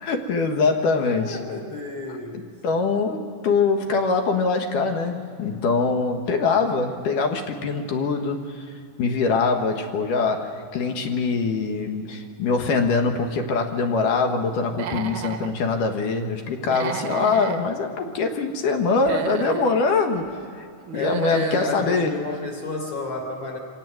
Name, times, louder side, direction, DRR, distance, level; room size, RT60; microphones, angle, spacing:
voice 1, 0.0-1.4 2.6-8.7 9.0-20.3 20.6-20.7 20.9-22.1, left 4 dB, 75° left, 4 dB, 3.0 m, -23 dB
voice 2, 0.9-2.6 20.9-23.6, left 2 dB, 45° left, 2 dB, 4.1 m, -31 dB
Human voice / Animal, 14.7-15.5 16.6-17.6 18.9-19.7 20.9-21.7, right 7 dB, 70° right, 1.2 m, -31 dB
25.0 x 18.0 x 7.7 m, 2.5 s
omnidirectional pair, 3.9 m